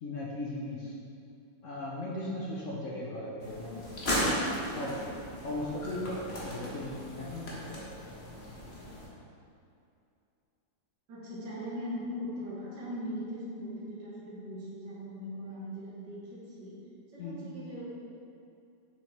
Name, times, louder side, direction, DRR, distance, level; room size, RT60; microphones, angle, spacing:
voice 1, 0.0-0.9 1.6-3.9 4.6-5.0 5.4-7.9 17.2-17.4, left 1 dB, 55° left, -4 dB, 0.9 m, -37 dB
sound 1, 3.4-9.1, equal, 35° left, 1.3 m, -36 dB
voice 2, 11.1-16.8 17.1-17.9, equal, 55° right, -9 dB, 2.3 m, -40 dB
6.7 x 6.4 x 3.4 m, 2.6 s
omnidirectional pair, 2.2 m